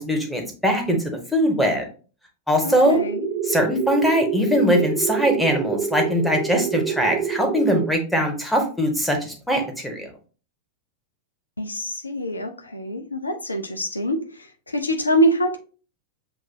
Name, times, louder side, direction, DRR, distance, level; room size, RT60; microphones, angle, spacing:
voice 1, 0.0-1.9 2.5-3.0 3.4-10.1, equal, ahead, 2 dB, 1.3 m, -21 dB
voice 2, 2.6-3.3 11.6-15.6, equal, 80° left, 7 dB, 0.6 m, -25 dB
sound 1, 2.9-7.9, right 8 dB, 45° right, 0.8 m, -27 dB
7.7 x 2.6 x 2.7 m, 0.37 s
figure-of-eight pair, 90°, 0 cm